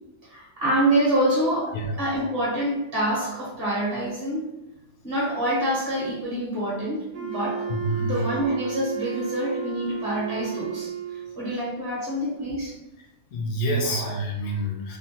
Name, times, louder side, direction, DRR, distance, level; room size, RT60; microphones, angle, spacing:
voice 1, 0.2-4.4 5.0-7.6 8.0-12.7 13.8-14.1, right 1 dB, 45° right, -7 dB, 1.1 m, -26 dB
Wind instrument woodwind instrument, 7.1-11.4, right 7 dB, 85° right, 1.1 m, -33 dB
voice 2, 7.7-8.2 13.3-15.0, right 1 dB, 75° left, 1 dB, 1.0 m, -27 dB
2.9 x 2.1 x 2.8 m, 0.95 s
omnidirectional pair, 1.6 m